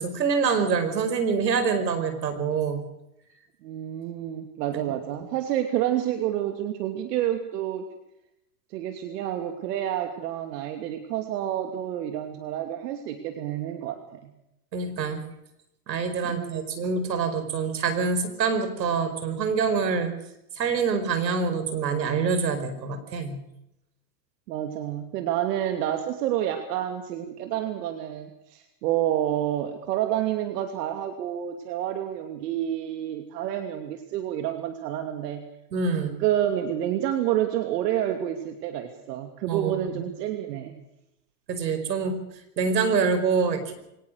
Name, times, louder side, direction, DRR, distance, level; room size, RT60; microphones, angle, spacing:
voice 1, 0.0-2.8 14.7-15.2 15.9-20.1 20.6-23.4 35.7-36.1 39.5-40.0 41.5-42.2 42.6-43.7, right 5 dB, 90° right, 9 dB, 5.3 m, -25 dB
voice 2, 3.6-7.9 8.7-14.3 16.3-16.8 24.5-35.4 35.9-40.8, right 11 dB, 70° right, 6 dB, 3.0 m, -29 dB
24.0 x 19.0 x 6.5 m, 0.84 s
hypercardioid pair, 105°, 49 cm